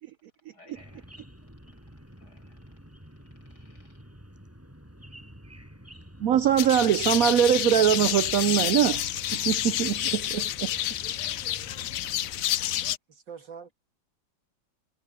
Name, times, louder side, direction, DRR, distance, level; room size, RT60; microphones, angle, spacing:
voice 1, 0.5-1.1 2.2-2.6 3.5-4.0, left 3 dB, 55° left, 7.9 m, -57 dB
sound 1, 0.7-12.4, equal, 5° right, 7.3 m, -48 dB
voice 2, 6.2-9.0 9.3-10.7, right 10 dB, 85° right, 0.7 m, -22 dB
sound 2, 6.6-13.0, left 12 dB, 85° left, 0.7 m, -29 dB
voice 3, 13.1-13.7, right 7 dB, 65° right, 3.0 m, -43 dB
omnidirectional pair, 2.2 m